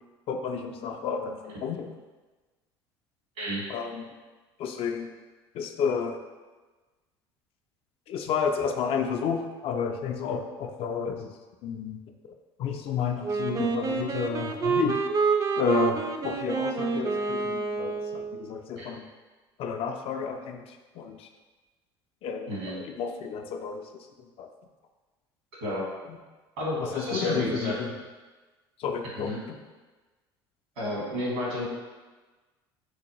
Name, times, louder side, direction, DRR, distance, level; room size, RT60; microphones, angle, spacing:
voice 1, 0.3-2.0 3.7-4.1 4.6-5.1 5.5-6.2 8.1-11.3 11.6-12.0 12.6-15.0 15.6-19.0 19.6-21.3 22.2-24.5 26.1-26.2 26.8-27.9 28.8-29.6, left 6 dB, 45° left, 5 dB, 0.4 m, -31 dB
Wind instrument woodwind instrument, 13.2-18.4, right 5 dB, 25° right, 0.4 m, -28 dB
voice 2, 22.5-22.8 25.6-25.8 26.6-27.7 29.2-29.4 30.8-31.7, left 1 dB, 75° right, -5 dB, 1.4 m, -31 dB
4.5 x 2.3 x 2.9 m, 1.3 s
hypercardioid pair, 70°, 13 cm